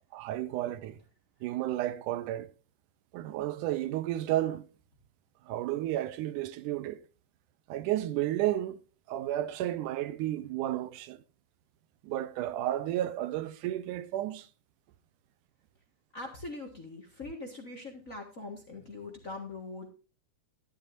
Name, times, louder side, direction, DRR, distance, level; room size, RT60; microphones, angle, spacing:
voice 1, 0.1-1.0 1.4-2.5 3.1-4.6 5.5-7.0 7.7-8.8 9.1-11.2 12.0-14.5, right 13 dB, 80° right, 2.2 m, -32 dB
voice 2, 16.1-19.9, left 2 dB, 35° left, 1.4 m, -42 dB
12.5 x 11.0 x 2.6 m
omnidirectional pair, 3.6 m